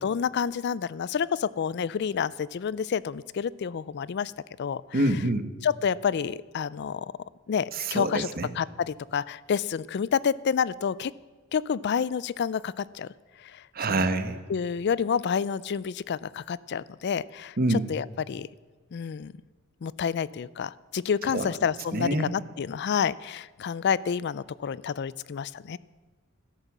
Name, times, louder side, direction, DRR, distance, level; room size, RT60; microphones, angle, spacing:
voice 1, 0.0-4.3 4.6-5.0 5.6-7.1 7.5-8.3 8.6-11.1 11.5-13.1 13.4-14.1 14.5-18.5 18.9-19.3 19.8-25.8, left 7 dB, 55° left, 21 dB, 0.4 m, -29 dB
voice 2, 4.9-5.5 7.7-8.5 13.7-14.4 17.6-17.9 21.3-21.5 21.9-22.3, right 2 dB, 45° right, 10 dB, 1.1 m, -26 dB
13.5 x 11.0 x 7.3 m, 1.4 s
head